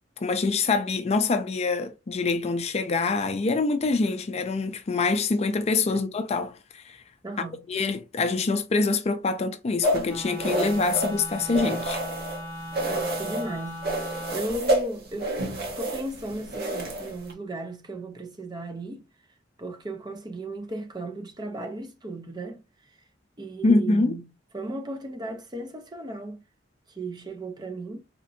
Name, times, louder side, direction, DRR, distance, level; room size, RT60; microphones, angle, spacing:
voice 1, 0.2-7.0 7.7-12.0 23.6-24.2, left 3 dB, 35° left, 0.4 m, -25 dB
voice 2, 7.2-7.7 12.9-15.3 15.8-19.0 19.6-22.6 23.4-24.3 24.5-26.4 26.9-28.0, right 1 dB, 20° right, 0.6 m, -36 dB
sound 1, 9.8-12.4 12.7-13.5 13.8-17.3, right 1 dB, 55° right, 1.0 m, -29 dB
Wind instrument woodwind instrument, 10.0-14.4, equal, 10° left, 0.8 m, -38 dB
4.2 x 2.6 x 2.6 m
head